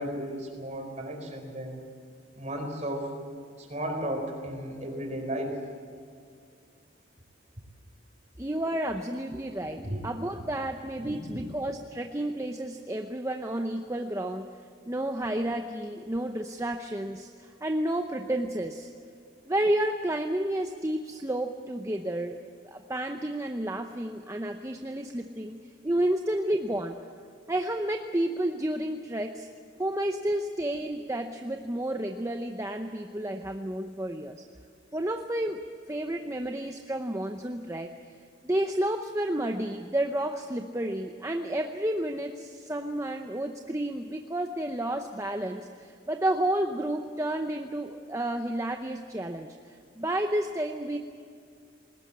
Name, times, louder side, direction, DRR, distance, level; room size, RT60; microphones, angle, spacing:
voice 1, 0.0-1.8 2.3-3.1 3.6-5.6 9.6-10.0 11.0-11.4, equal, 35° right, 2 dB, 4.5 m, -34 dB
voice 2, 8.4-14.5 14.9-18.9 19.5-22.4 22.6-25.6 25.8-27.0 27.5-29.5 29.8-34.4 34.9-35.6 35.9-37.9 38.4-51.0, right 1 dB, 15° right, 5 dB, 0.7 m, -31 dB
21.0 x 19.0 x 8.6 m, 2.3 s
head